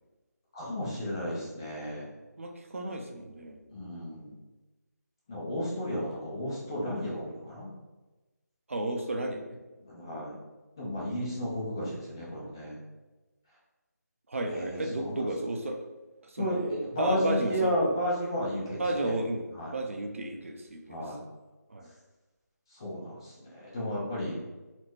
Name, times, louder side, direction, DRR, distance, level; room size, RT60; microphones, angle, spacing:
voice 1, 0.5-2.1 3.7-4.4 5.3-7.7 9.8-10.4 10.8-12.8 14.5-15.3 16.4-19.2 19.5-19.7 20.9-21.2 22.7-24.4, equal, 15° left, -6 dB, 0.5 m, -33 dB
voice 2, 2.4-3.6 8.7-9.6 14.3-15.8 16.2-17.7 18.8-19.4 19.7-21.1 21.7-21.9, right 1 dB, 50° right, 3 dB, 0.6 m, -33 dB
4.2 x 2.1 x 4.4 m, 1.1 s
figure-of-eight pair, 170°, 9 cm